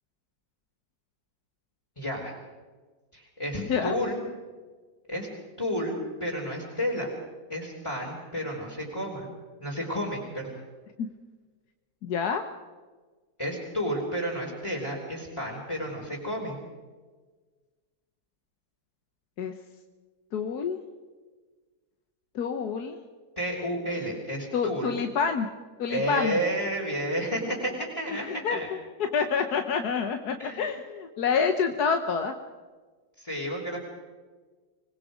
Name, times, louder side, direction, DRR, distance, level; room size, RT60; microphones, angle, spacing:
voice 1, 2.0-2.3 3.1-4.2 5.1-5.3 5.6-7.1 7.5-9.3 9.6-10.6 13.4-16.6 23.4-25.0 25.9-28.7 30.4-30.7 33.2-33.8, equal, 15° left, -4 dB, 3.5 m, -31 dB
voice 2, 12.0-12.4 19.4-19.5 20.3-20.8 22.3-23.0 24.5-25.5 25.8-26.3 28.1-32.3, left 6 dB, 65° left, 7 dB, 1.5 m, -28 dB
26.0 x 20.0 x 5.0 m, 1.4 s
omnidirectional pair, 1.8 m